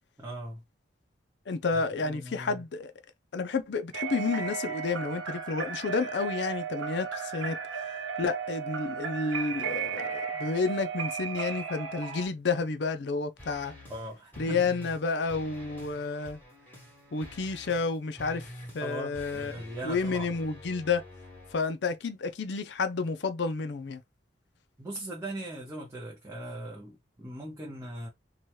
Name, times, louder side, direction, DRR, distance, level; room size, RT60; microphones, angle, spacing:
voice 1, 0.2-0.6 1.7-2.6 13.9-14.7 18.8-20.3 24.8-28.1, right 1 dB, 15° right, 0.5 m, -40 dB
voice 2, 1.5-2.9 3.3-7.6 8.2-13.7 14.4-16.4 17.1-18.5 18.7-19.5 19.8-21.0 21.5-24.0, left 4 dB, 65° left, 0.5 m, -30 dB
sound 1, 3.9-12.3, right 6 dB, 85° right, 0.9 m, -35 dB
sound 2, 13.4-14.1 14.3-15.0 15.3-21.6, left 1 dB, 10° left, 1.3 m, -47 dB
2.8 x 2.3 x 3.1 m
head